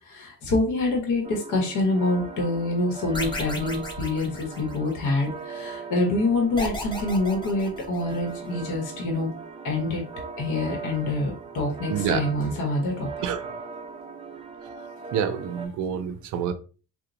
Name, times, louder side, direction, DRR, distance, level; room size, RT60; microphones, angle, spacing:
voice 1, 0.0-9.3 9.6-10.0 10.4-13.1, left 2 dB, 85° left, 0.9 m, -26 dB
sound 1, 1.2-15.7, right 5 dB, 20° right, 0.4 m, -39 dB
sound 2, 3.1-5.1 6.6-8.4, left 1 dB, 15° left, 0.6 m, -35 dB
voice 2, 11.9-12.2 13.2-13.5 15.1-16.5, right 8 dB, 90° right, 0.5 m, -27 dB
2.9 x 2.0 x 2.5 m
cardioid pair, 90°, 30 cm